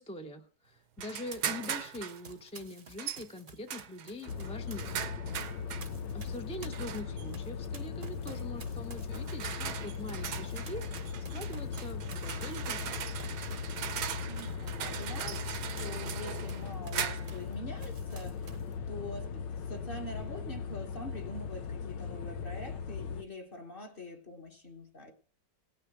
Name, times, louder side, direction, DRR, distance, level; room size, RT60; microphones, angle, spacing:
voice 1, 0.0-4.9 6.1-13.0, left 1 dB, 5° left, 0.6 m, -43 dB
sound 1, 1.0-2.2 3.0-3.2 3.7-5.9 6.7-7.2 8.3-8.5 9.1-17.4, right 9 dB, 70° right, 1.3 m, -39 dB
Run, 1.3-5.1 5.4-17.5 17.8-18.7, right 4 dB, 35° right, 0.9 m, -52 dB
sound 2, 4.3-23.2, left 6 dB, 85° left, 1.5 m, -39 dB
voice 2, 14.2-25.1, left 1 dB, 30° left, 1.5 m, -45 dB
18.0 x 6.6 x 6.1 m
omnidirectional pair, 1.9 m